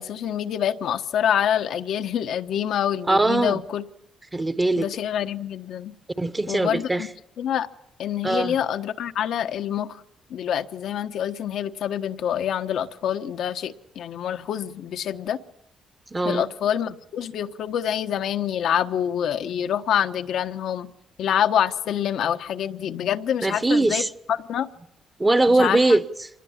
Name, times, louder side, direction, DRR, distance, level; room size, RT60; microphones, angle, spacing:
voice 1, 0.0-3.8 4.8-5.9 6.5-7.1 7.4-7.7 8.0-10.0 10.3-15.4 16.2-20.9 21.2-24.7 25.5-26.0, left 9 dB, 75° left, 1.2 m, -26 dB
voice 2, 3.1-3.6 4.3-4.9 6.2-7.1 8.2-8.5 16.1-16.5 23.4-24.1 25.2-26.3, right 2 dB, 20° right, 1.1 m, -21 dB
25.5 x 20.0 x 7.3 m
cardioid pair, 90°, 0 cm